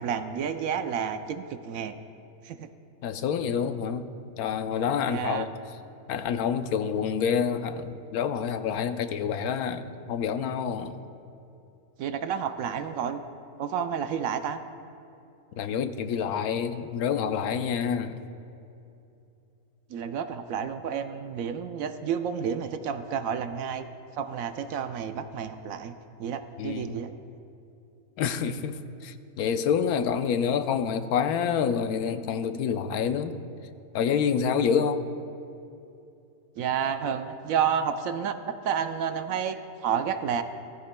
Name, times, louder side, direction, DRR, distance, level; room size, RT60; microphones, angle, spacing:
voice 1, 0.0-2.0 2.4-2.7 5.1-5.5 12.0-13.2 13.6-14.6 19.9-23.9 24.2-27.1 36.6-40.4, right 7 dB, 70° right, 9 dB, 0.9 m, -30 dB
voice 2, 3.0-4.1 4.4-5.5 6.1-11.0 15.6-18.2 26.6-27.0 28.2-33.4 33.9-35.0, left 7 dB, 85° left, 9 dB, 1.1 m, -27 dB
16.5 x 14.5 x 2.2 m, 2.7 s
omnidirectional pair, 1.5 m